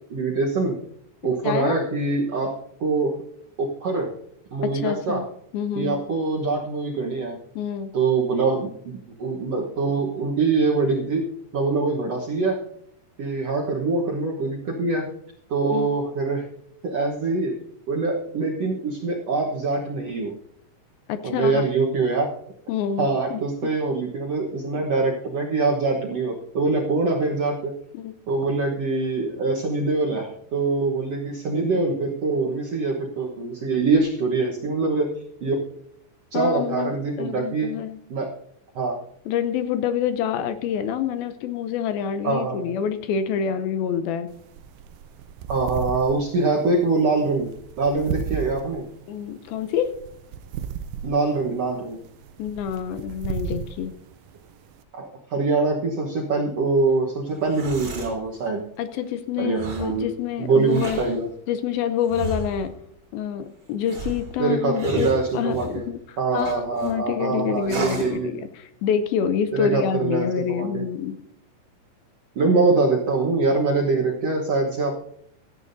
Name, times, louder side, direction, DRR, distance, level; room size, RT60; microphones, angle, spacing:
voice 1, 0.1-0.8 1.2-3.2 3.6-4.1 4.5-5.2 5.7-7.4 7.9-11.2 11.5-12.6 13.2-15.0 15.5-16.5 16.8-17.5 17.9-20.3 21.2-22.3 23.0-27.7 28.3-35.1 35.4-35.5 36.3-37.7 38.1-38.3 38.7-39.0 42.2-42.7 45.5-47.5 47.8-48.8 51.0-52.0 54.9-58.6 59.4-60.1 60.4-61.3 64.4-65.8 66.2-68.4 69.5-70.8 72.3-75.0, right 3 dB, 65° right, -1 dB, 1.6 m, -24 dB
voice 2, 1.4-1.8 4.6-5.3 5.5-6.0 7.6-7.9 15.7-15.9 21.1-21.7 22.7-23.7 27.9-28.1 36.3-38.0 39.3-44.3 49.1-50.0 52.4-53.9 58.8-61.0 61.5-62.7 63.1-71.2, left 8 dB, 75° left, 10 dB, 2.4 m, -27 dB
sound 1, 44.3-54.8, right 7 dB, 90° right, 1.9 m, -36 dB
sound 2, 57.3-58.2 59.5-60.0 60.6-61.2 62.1-62.7 63.8-65.8 66.4-66.9 67.6-68.2, right 2 dB, 35° right, 2.8 m, -33 dB
16.5 x 13.5 x 2.7 m, 0.71 s
omnidirectional pair, 4.6 m